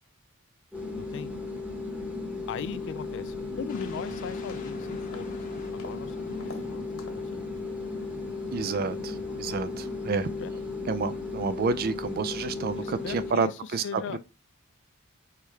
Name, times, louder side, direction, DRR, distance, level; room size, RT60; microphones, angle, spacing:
sound 1, 0.7-13.4, left 3 dB, 5° right, 1.0 m, -35 dB
voice 1, 0.9-1.3 2.5-5.3 5.7-7.5 10.4-10.6 12.4-12.5 12.8-13.5 13.8-14.2, left 7 dB, 60° left, 0.3 m, -39 dB
sound 2, 3.0-3.4 3.8-4.1 4.5-4.7 5.1-5.4 5.8-6.0 6.4-6.7 7.0-7.3, left 3 dB, 80° left, 1.5 m, -47 dB
sound 3, 3.7-11.6, left 3 dB, 40° left, 0.8 m, -50 dB
voice 2, 8.5-10.3 10.9-14.2, right 4 dB, 45° right, 0.4 m, -30 dB
4.7 x 3.4 x 3.1 m
head